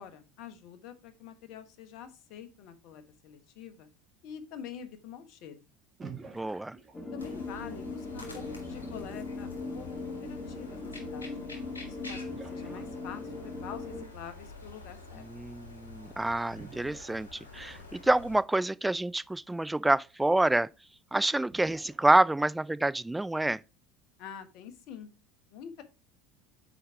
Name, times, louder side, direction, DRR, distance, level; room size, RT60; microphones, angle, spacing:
voice 1, 0.0-3.9 4.2-5.6 7.1-11.5 11.8-15.3 24.2-25.1 25.5-25.8, left 8 dB, 55° left, 1.1 m, -46 dB
sound 1, 6.0-7.5 11.4-11.5 12.2-13.4 16.6-17.8 19.2-19.3 19.7-19.8 21.5-22.7, right 5 dB, 25° right, 1.8 m, -49 dB
voice 2, 6.3-6.8 15.3-20.7 21.1-23.6, right 2 dB, 10° right, 0.3 m, -27 dB
sound 2, 6.9-14.0, left 3 dB, 20° left, 1.7 m, -39 dB
sound 3, 7.2-18.4, left 3 dB, 90° left, 1.7 m, -48 dB
6.3 x 4.7 x 4.8 m
hypercardioid pair, 75°, 0 cm